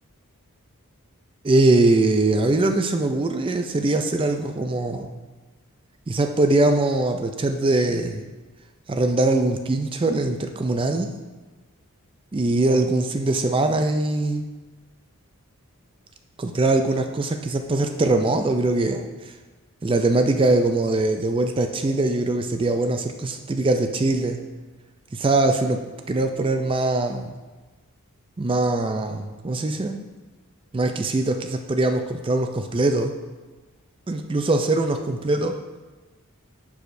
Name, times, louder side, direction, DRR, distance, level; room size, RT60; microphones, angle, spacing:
voice 1, 1.4-5.1 6.1-8.3 8.9-11.1 12.3-14.5 16.4-19.1 19.8-24.4 25.1-27.3 28.4-30.0 30.7-33.1 34.1-35.6, right 2 dB, 25° right, 6 dB, 0.4 m, -22 dB
11.0 x 4.8 x 2.6 m, 1.3 s
head